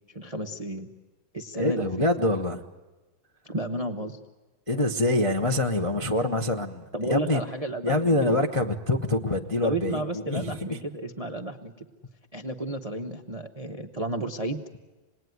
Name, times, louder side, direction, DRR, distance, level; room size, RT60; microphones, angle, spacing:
voice 1, 0.1-0.9 1.3-1.9 3.4-4.2 6.9-8.4 9.6-11.9 12.3-14.8, right 1 dB, 35° right, 5 dB, 0.6 m, -32 dB
voice 2, 1.5-2.6 4.7-7.4 7.8-10.8, left 2 dB, 30° left, 3 dB, 0.6 m, -25 dB
26.5 x 20.0 x 9.4 m, 1.2 s
omnidirectional pair, 2.2 m